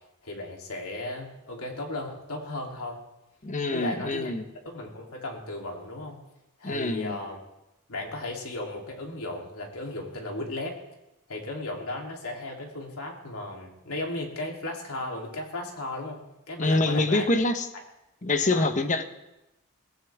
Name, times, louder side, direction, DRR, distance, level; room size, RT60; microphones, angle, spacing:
voice 1, 0.2-3.0 3.7-4.3 4.6-6.2 6.6-7.4 7.9-10.8 11.3-16.2 16.5-17.3 18.5-18.7, left 2 dB, 75° left, 0 dB, 3.2 m, -35 dB
voice 2, 3.4-4.4 6.6-7.2 16.6-17.7 18.2-19.0, left 2 dB, 35° left, 8 dB, 1.1 m, -25 dB
23.0 x 16.5 x 3.6 m, 0.93 s
head